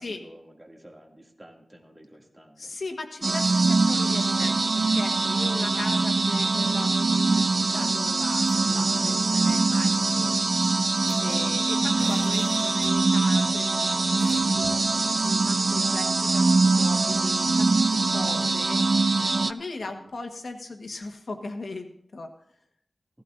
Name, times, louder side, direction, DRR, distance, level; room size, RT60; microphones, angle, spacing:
voice 1, 0.0-2.8 20.0-20.1, equal, 15° right, 1 dB, 2.3 m, -50 dB
voice 2, 2.6-10.3 11.2-22.3, left 3 dB, 65° left, 5 dB, 1.3 m, -39 dB
sound 1, 3.2-19.5, right 3 dB, 45° right, 0.4 m, -23 dB
sound 2, 8.3-9.1 9.4-9.5 9.8-13.3 13.5-13.7 14.2-14.9, equal, 5° left, 2.8 m, -47 dB
16.0 x 15.5 x 2.6 m, 0.68 s
wide cardioid pair, 105°, 0 cm